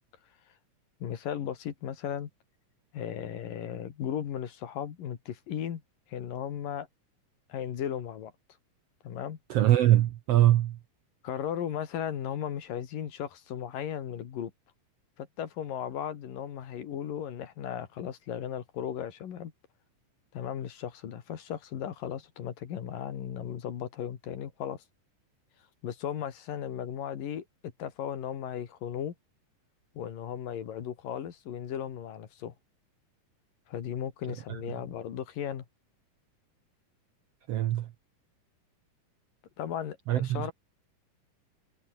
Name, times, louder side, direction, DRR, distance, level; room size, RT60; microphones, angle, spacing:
voice 1, 1.0-2.3 2.9-5.8 6.1-6.9 7.5-8.3 9.0-9.4 11.2-14.5 15.2-19.5 20.3-24.8 25.8-27.5 27.8-29.1 30.0-32.5 33.7-35.6 39.6-40.5, left 9 dB, 80° left, 3.9 m, -36 dB
voice 2, 9.5-10.7 37.5-37.8 40.1-40.5, right 13 dB, 75° right, 1.4 m, -23 dB
omnidirectional pair, 3.9 m